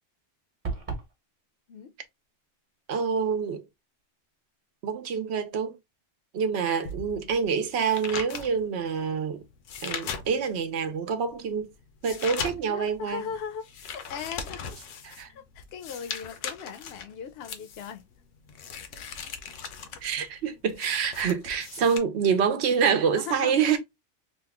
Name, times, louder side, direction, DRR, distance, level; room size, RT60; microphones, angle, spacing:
sound 1, 0.6-1.1, right 4 dB, 35° right, 0.9 m, -32 dB
voice 1, 2.9-3.7 4.8-5.8 6.3-9.4 9.8-11.7 12.0-13.2 15.0-15.3 20.0-23.8, right 6 dB, 70° right, 0.9 m, -26 dB
sound 2, 6.8-10.7 11.1-22.0, left 6 dB, 90° left, 1.0 m, -39 dB
voice 2, 12.5-13.6 13.9-14.8 15.3-18.0 23.1-23.7, left 7 dB, 65° left, 0.8 m, -38 dB
2.9 x 2.2 x 3.4 m
omnidirectional pair, 1.2 m